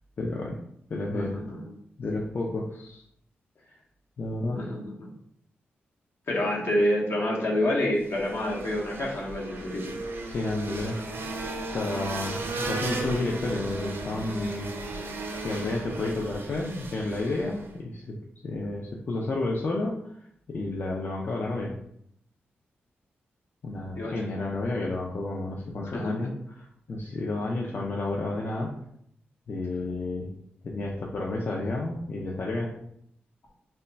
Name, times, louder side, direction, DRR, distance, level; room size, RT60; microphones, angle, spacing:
voice 1, 0.2-0.6 0.9-1.4 2.0-3.0 3.7-3.8 4.2-4.6 10.3-11.0 11.7-14.7 15.4-18.2 18.4-20.1 20.5-21.7 23.6-28.7 29.5-30.3 30.6-32.7, left 2 dB, 50° left, -2 dB, 0.4 m, -31 dB
voice 2, 1.1-1.7 4.5-5.1 6.3-9.9 23.9-24.1 25.8-26.3, left 1 dB, 70° left, -2 dB, 0.9 m, -28 dB
sound 1, 7.9-17.8, right 2 dB, 65° right, 0.5 m, -35 dB
2.2 x 2.1 x 3.9 m, 0.71 s
cardioid pair, 60°, 4 cm